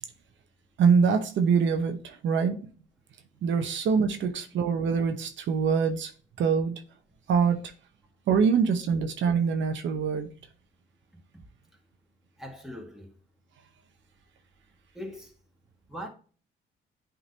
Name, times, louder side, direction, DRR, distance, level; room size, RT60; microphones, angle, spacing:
voice 1, 0.8-2.6 3.4-6.1 6.4-6.8 7.3-7.6 8.3-10.3, right 6 dB, 70° right, 0.9 m, -24 dB
voice 2, 12.4-13.1 14.9-15.3 15.9-16.1, equal, ahead, 1.7 m, -40 dB
8.8 x 3.8 x 2.8 m
cardioid pair, 90°, 20 cm